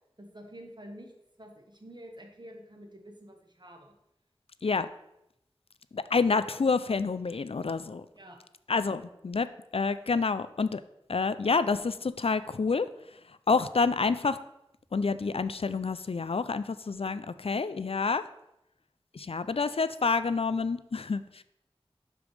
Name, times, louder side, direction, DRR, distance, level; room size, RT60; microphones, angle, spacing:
voice 1, 0.2-1.1 1.4-3.9 8.1-8.4, equal, 45° right, 2 dB, 1.3 m, -48 dB
voice 2, 5.9-8.1 8.7-10.8 11.1-14.4 14.9-18.2 19.1-21.4, left 4 dB, 70° left, 13 dB, 0.4 m, -28 dB
11.5 x 5.0 x 3.3 m, 0.82 s
wide cardioid pair, 50°, 10 cm